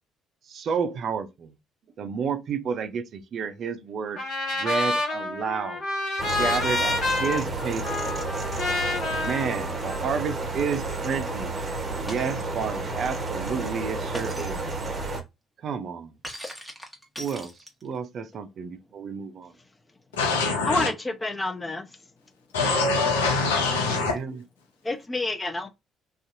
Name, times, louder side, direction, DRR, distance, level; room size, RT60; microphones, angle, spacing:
voice 1, 0.5-1.5 2.0-4.2 4.5-5.8 6.4-8.0 9.2-11.6 12.0-14.8 15.6-16.1 17.2-17.5 17.8-19.5 23.8-24.4, right 6 dB, 55° right, 0.4 m, -31 dB
Trumpet, 4.2-10.4, left 2 dB, 55° left, 1.2 m, -29 dB
sound 1, 6.2-15.2, right 2 dB, 35° right, 0.8 m, -31 dB
Shatter, 12.1-12.5 14.1-14.6 16.2-18.0, equal, 5° left, 1.0 m, -40 dB
voice 2, 20.1-20.9 22.5-24.2, left 3 dB, 80° left, 0.7 m, -24 dB
voice 3, 20.7-21.9 24.8-25.7, left 2 dB, 20° left, 0.6 m, -28 dB
2.6 x 2.4 x 2.5 m
hypercardioid pair, 50°, 0 cm